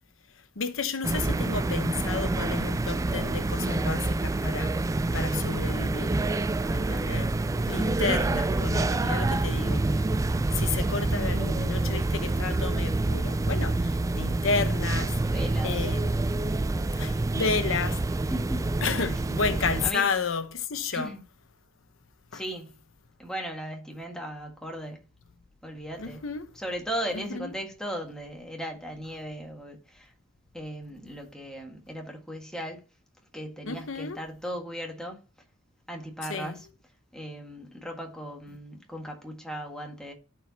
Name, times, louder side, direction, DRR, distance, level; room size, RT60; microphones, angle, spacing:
voice 1, 0.6-4.8 5.1-6.2 6.7-7.3 7.6-9.9 10.5-15.2 15.6-16.1 17.0-18.0 18.8-21.1 22.3-22.4 26.0-26.5 27.1-27.5 33.7-34.2 36.3-36.6, left 5 dB, 90° left, 0.9 m, -31 dB
sound 1, 1.0-19.9, right 2 dB, 15° right, 0.3 m, -27 dB
voice 2, 15.2-15.9 18.3-18.7 19.8-20.0 20.9-21.2 22.3-22.7 23.2-25.0 25.6-26.2 26.5-30.1 30.5-32.8 33.3-35.2 35.9-36.7 37.1-40.1, equal, 5° left, 1.6 m, -37 dB
13.5 x 4.9 x 2.8 m
head